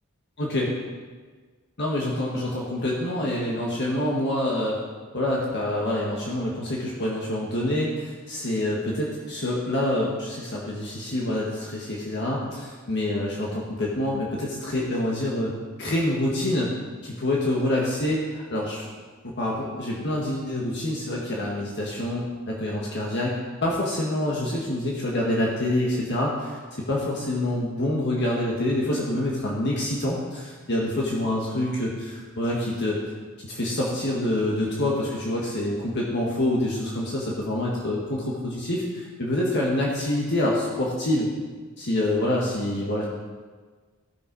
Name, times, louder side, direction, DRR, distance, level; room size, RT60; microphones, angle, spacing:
voice 1, 0.4-0.7 1.8-4.8 5.1-15.5 15.8-16.7 17.0-18.9 19.4-26.6 26.9-33.0 33.4-41.3 41.8-43.1, left 1 dB, 55° left, -4 dB, 1.6 m, -26 dB
15.5 x 6.5 x 4.7 m, 1.5 s
head